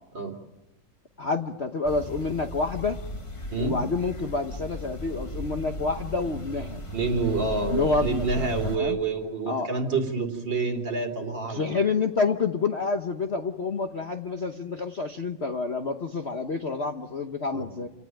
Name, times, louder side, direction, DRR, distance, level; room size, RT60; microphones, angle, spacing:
voice 1, 1.2-3.0 3.6-6.8 7.7-9.0 9.5-9.7 11.5-17.9, left 4 dB, 40° left, 5 dB, 1.0 m, -28 dB
sound 1, 1.8-8.8, equal, 15° left, 1.4 m, -36 dB
voice 2, 6.9-11.7 17.5-17.6, right 4 dB, 55° right, 2 dB, 3.8 m, -28 dB
28.5 x 18.0 x 9.0 m, 0.94 s
omnidirectional pair, 2.3 m